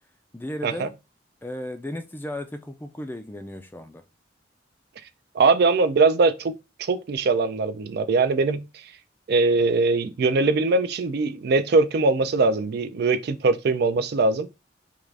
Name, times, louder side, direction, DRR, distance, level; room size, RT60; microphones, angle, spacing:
voice 1, 0.3-0.9 1.4-4.0, left 1 dB, 10° left, 0.4 m, -35 dB
voice 2, 5.3-6.5 6.8-8.6 9.3-14.5, right 3 dB, 60° right, 0.4 m, -21 dB
3.6 x 2.4 x 3.2 m
head